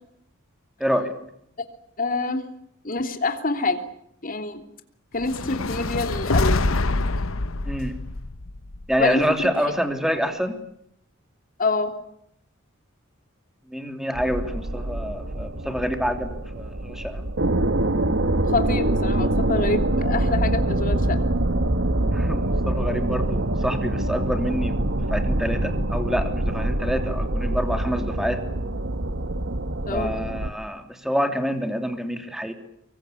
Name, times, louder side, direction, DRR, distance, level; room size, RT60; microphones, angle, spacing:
voice 1, 0.8-1.1 7.6-8.0 8.9-10.6 13.7-17.2 22.1-28.4 29.9-32.5, equal, ahead, 6 dB, 3.1 m, -27 dB
voice 2, 2.0-2.4 2.8-3.8 4.2-4.6 5.1-6.6 9.0-9.5 11.6-11.9 18.4-21.2 29.9-30.1, left 3 dB, 40° left, 6 dB, 3.1 m, -26 dB
sound 1, 5.2-9.5, left 2 dB, 70° left, 1.0 m, -25 dB
sound 2, 14.1-30.5, right 1 dB, 60° right, 1.5 m, -25 dB
25.0 x 24.0 x 8.5 m, 0.73 s
head